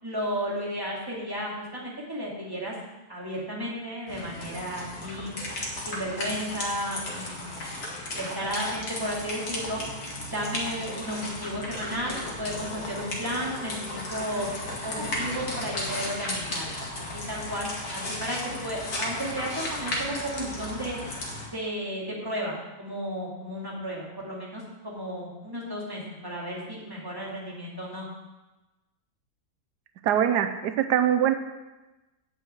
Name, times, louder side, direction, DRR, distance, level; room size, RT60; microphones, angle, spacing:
voice 1, 0.0-2.7 3.1-5.4 5.9-7.6 8.1-9.8 10.3-14.5 14.8-21.0 21.5-28.1, equal, 15° right, -4 dB, 2.5 m, -33 dB
sound 1, 4.1-21.5, left 1 dB, 65° left, 2.4 m, -35 dB
voice 2, 30.0-31.3, right 10 dB, 85° right, 7 dB, 1.2 m, -23 dB
8.4 x 6.1 x 7.9 m, 1.1 s
omnidirectional pair, 1.7 m